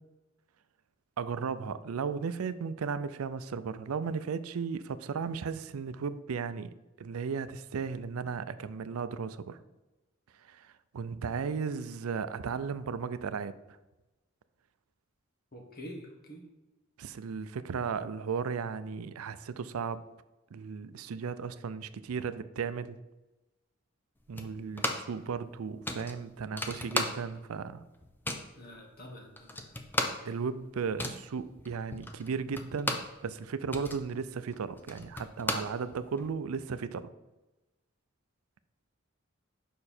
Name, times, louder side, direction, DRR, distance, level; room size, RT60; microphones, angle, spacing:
voice 1, 1.2-9.6 10.4-13.8 17.0-20.0 20.5-23.0 24.3-27.8 30.2-37.1, right 5 dB, 90° right, 14 dB, 0.4 m, -35 dB
voice 2, 15.5-16.4 28.5-29.7, equal, 45° left, 2 dB, 1.4 m, -46 dB
sound 1, 24.4-25.2 25.5-25.6 25.8-27.5 27.8-28.5 29.1-29.2 29.4-33.2 33.5-36.3, left 1 dB, 10° left, 0.5 m, -35 dB
6.8 x 5.5 x 4.3 m, 1.1 s
head